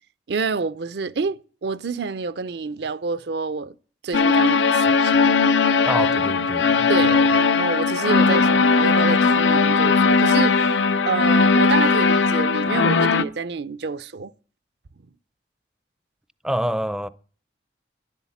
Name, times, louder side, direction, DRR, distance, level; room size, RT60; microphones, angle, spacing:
voice 1, 0.3-3.8 4.0-5.5 6.9-10.7 11.1-14.3, right 4 dB, 65° right, 0.5 m, -28 dB
sound 1, 4.1-13.2, left 4 dB, 85° left, 0.7 m, -18 dB
voice 2, 5.8-7.2 16.4-17.1, equal, 5° right, 0.4 m, -27 dB
10.5 x 8.2 x 7.2 m
head